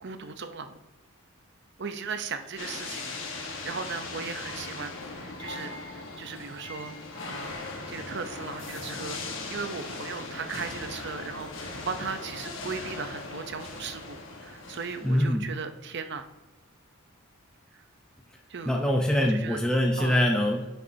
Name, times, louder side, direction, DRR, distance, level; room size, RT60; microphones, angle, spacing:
voice 1, 0.0-0.8 1.8-6.9 7.3-7.6 7.9-9.2 9.5-16.2 18.5-18.7 19.3-19.6 20.0-20.2, right 5 dB, 55° right, 8 dB, 0.6 m, -37 dB
sound 1, 2.6-15.3, left 3 dB, 60° left, 1.2 m, -39 dB
voice 2, 15.0-15.5 18.7-20.7, equal, 5° left, 0 dB, 0.5 m, -24 dB
9.3 x 6.7 x 2.7 m, 1.1 s
head